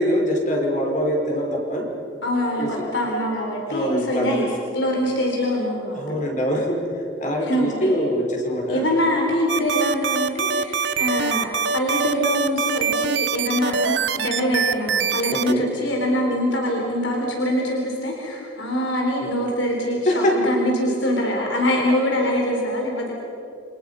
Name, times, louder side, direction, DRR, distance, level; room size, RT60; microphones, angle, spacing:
voice 1, 0.0-1.9 2.6-2.9 3.7-4.5 5.9-8.8 15.3-15.7 20.1-20.4, equal, 40° left, 0 dB, 5.0 m, -23 dB
voice 2, 2.2-4.4 4.7-6.2 7.5-8.0 8.7-11.5 11.7-23.1, equal, 85° left, -1 dB, 4.3 m, -24 dB
sound 1, 9.5-15.5, right 6 dB, 70° right, 0.8 m, -23 dB
29.5 x 26.5 x 5.6 m, 2.7 s
head